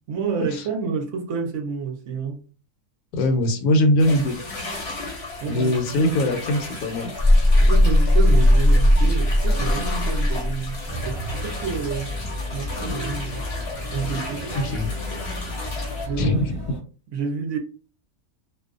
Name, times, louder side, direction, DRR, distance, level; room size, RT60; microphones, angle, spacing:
voice 1, 0.1-2.4 5.4-6.2 7.6-12.2 12.5-13.5 13.9-14.7 16.1-16.4 17.1-17.6, right 5 dB, 65° right, 0.8 m, -29 dB
voice 2, 3.1-4.4 5.5-7.1 14.5-14.9 16.2-16.6, left 1 dB, 80° left, 1.1 m, -21 dB
sound 1, 4.0-16.1, left 2 dB, 55° left, 0.8 m, -34 dB
sound 2, 7.2-10.9, left 1 dB, 85° right, 0.4 m, -17 dB
Male speech man speaking / Child speech kid speaking / Chatter, 10.8-16.8, left 1 dB, 25° right, 0.9 m, -32 dB
2.5 x 2.1 x 2.3 m
omnidirectional pair, 1.6 m